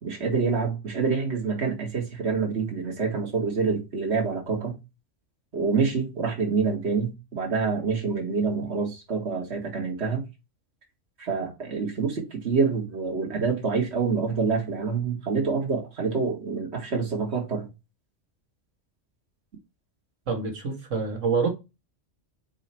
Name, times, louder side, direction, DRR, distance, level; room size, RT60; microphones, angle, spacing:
voice 1, 0.0-4.8 5.5-10.2 11.2-17.7, right 5 dB, 60° right, 2.1 m, -27 dB
voice 2, 20.3-21.5, right 5 dB, 85° right, 2.1 m, -26 dB
4.9 x 4.9 x 4.3 m
omnidirectional pair, 1.3 m